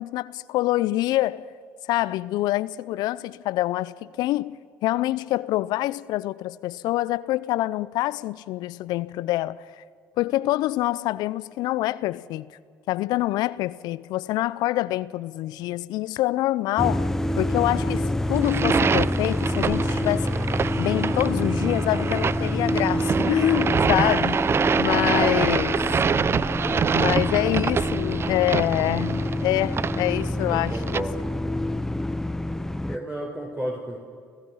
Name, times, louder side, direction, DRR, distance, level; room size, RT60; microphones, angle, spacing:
voice 1, 0.0-1.5 1.9-9.8 10.2-12.5 12.9-17.1 17.4-20.3 20.8-24.4 24.8-25.8 26.9-31.0, left 16 dB, 70° left, 0.6 m, -26 dB
sound 1, 16.8-33.0, left 1 dB, 5° left, 0.6 m, -26 dB
sound 2, 18.4-31.0, right 6 dB, 35° right, 0.4 m, -26 dB
voice 2, 30.4-31.4 32.8-34.0, right 1 dB, 15° right, 4.2 m, -33 dB
30.0 x 16.0 x 5.7 m
hypercardioid pair, 60°, 7 cm